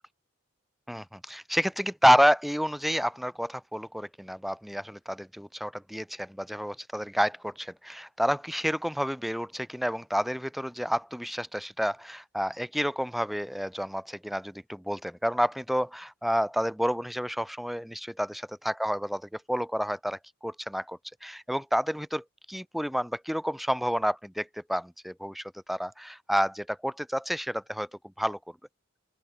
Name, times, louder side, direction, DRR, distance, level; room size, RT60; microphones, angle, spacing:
voice 1, 0.9-27.9 28.2-28.4, equal, ahead, 1.2 m, -29 dB
open air
head